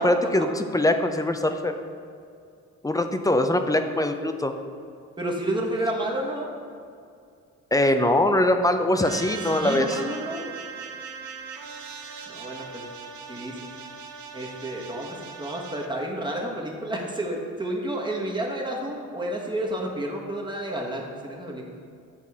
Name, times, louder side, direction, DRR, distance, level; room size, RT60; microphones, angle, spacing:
voice 1, 0.0-1.7 2.8-4.5 7.7-10.0, left 1 dB, 10° left, 7 dB, 0.4 m, -22 dB
voice 2, 5.2-6.5 9.4-10.4 12.3-12.8 13.3-13.6 14.3-21.7, right 1 dB, 15° right, -1 dB, 1.2 m, -30 dB
sound 1, 9.0-15.9, right 5 dB, 70° right, 0.7 m, -40 dB
9.7 x 4.1 x 3.6 m, 2.4 s
cardioid pair, 90°, 30 cm